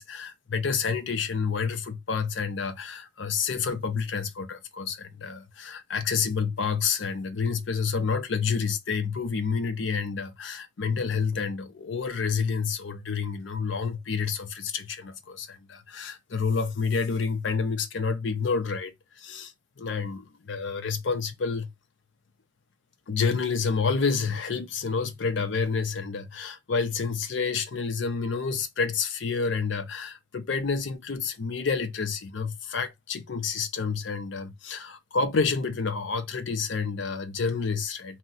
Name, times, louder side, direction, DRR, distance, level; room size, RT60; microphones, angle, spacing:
voice 1, 0.0-19.5 19.8-21.7 23.1-38.2, left 5 dB, 75° left, 0.5 m, -29 dB
2.7 x 2.1 x 3.9 m
head